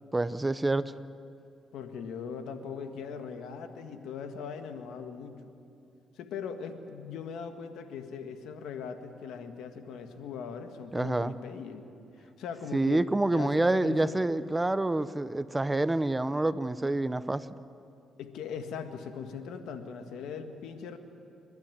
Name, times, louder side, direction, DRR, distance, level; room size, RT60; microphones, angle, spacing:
voice 1, 0.1-0.9 10.9-11.3 12.7-17.5, right 2 dB, 15° right, 14 dB, 0.7 m, -27 dB
voice 2, 1.7-5.5 6.2-11.9 12.2-13.0 13.3-14.4 18.2-21.0, left 6 dB, 85° left, 6 dB, 1.7 m, -40 dB
29.5 x 11.5 x 9.8 m, 2.5 s
cardioid pair, 90°, 0 cm